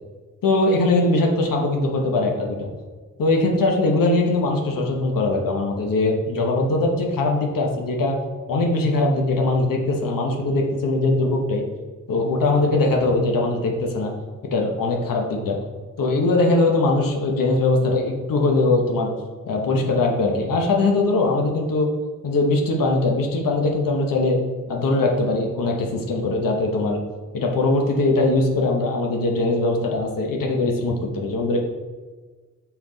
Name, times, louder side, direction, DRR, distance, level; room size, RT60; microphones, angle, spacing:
voice 1, 0.4-2.7 3.2-8.2 8.5-11.6 12.1-14.1 14.4-15.6 16.0-19.1 19.5-21.9 22.2-24.4 24.7-27.0 27.3-31.6, left 2 dB, 85° left, 1 dB, 1.0 m, -21 dB
5.8 x 4.6 x 3.9 m, 1.4 s
wide cardioid pair, 125°, 33 cm